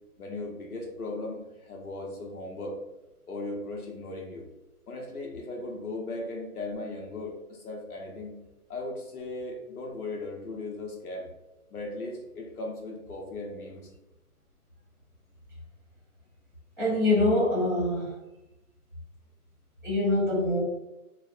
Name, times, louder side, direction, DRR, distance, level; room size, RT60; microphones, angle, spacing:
voice 1, 0.2-2.8 3.3-4.5 4.9-8.3 8.7-11.3 11.7-13.8, left 2 dB, 75° left, 1 dB, 0.9 m, -37 dB
voice 2, 16.8-18.1 19.8-20.6, left 1 dB, 15° right, -9 dB, 0.8 m, -24 dB
3.2 x 2.1 x 2.4 m, 1.0 s
hypercardioid pair, 175°, 45 cm